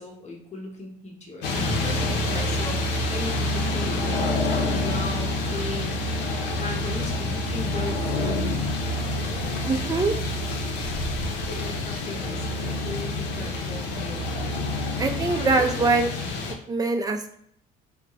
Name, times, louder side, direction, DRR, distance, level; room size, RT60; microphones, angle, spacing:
voice 1, 0.0-5.9 6.5-8.7 9.4-10.1 11.6-14.3 15.2-15.8, left 2 dB, 45° left, 0 dB, 1.1 m, -37 dB
sound 1, 1.4-16.5, left 2 dB, 90° left, 0.6 m, -27 dB
sound 2, 1.5-3.2, right 3 dB, 75° right, 0.6 m, -35 dB
voice 2, 9.7-10.1 15.0-16.1 16.7-17.3, right 3 dB, 20° right, 5 dB, 0.5 m, -23 dB
3.3 x 2.1 x 3.9 m, 0.67 s
cardioid pair, 110°, 17 cm